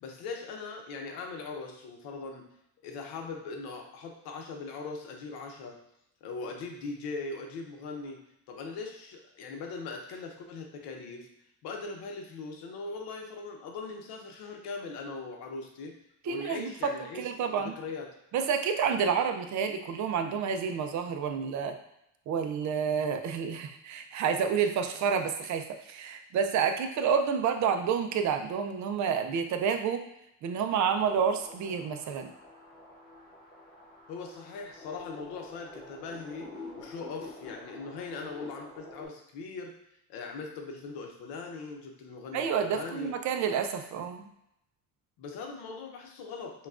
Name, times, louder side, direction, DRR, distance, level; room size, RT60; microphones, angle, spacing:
voice 1, 0.0-2.4 2.8-5.8 6.2-8.2 8.5-11.3 11.6-16.0 16.2-17.3 17.5-18.1 34.1-36.5 36.8-39.7 40.1-43.1 45.2-46.7, left 4 dB, 90° left, 2 dB, 0.8 m, -40 dB
voice 2, 16.3-17.7 18.3-21.8 22.3-30.0 30.4-32.3 42.3-44.3, right 7 dB, 50° right, 6 dB, 0.4 m, -29 dB
sound 1, 31.1-39.1, left 2 dB, 25° left, 1.0 m, -47 dB
5.6 x 2.3 x 2.4 m, 0.82 s
cardioid pair, 140°, 36 cm